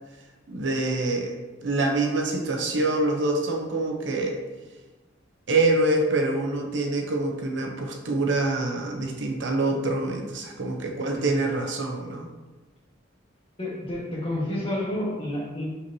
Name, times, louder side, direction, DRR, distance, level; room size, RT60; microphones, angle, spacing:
voice 1, 0.5-4.4 5.5-12.3, right 2 dB, 65° right, 1 dB, 0.8 m, -26 dB
voice 2, 13.6-15.6, left 1 dB, 25° left, -5 dB, 1.5 m, -30 dB
6.0 x 5.7 x 2.8 m, 1.2 s
head